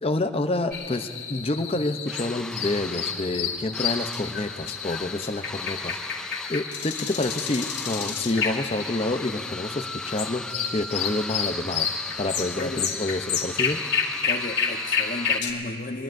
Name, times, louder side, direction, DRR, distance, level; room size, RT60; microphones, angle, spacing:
voice 1, 0.0-11.9 12.2-13.8, left 2 dB, 35° left, 8 dB, 0.6 m, -28 dB
sound 1, 0.7-15.5, left 6 dB, 65° left, 2.1 m, -30 dB
sound 2, 2.1-15.4, left 1 dB, 5° left, 0.3 m, -39 dB
voice 2, 12.6-12.9 14.2-16.0, left 2 dB, 50° left, 6 dB, 1.0 m, -34 dB
24.0 x 20.0 x 2.6 m, 2.5 s
head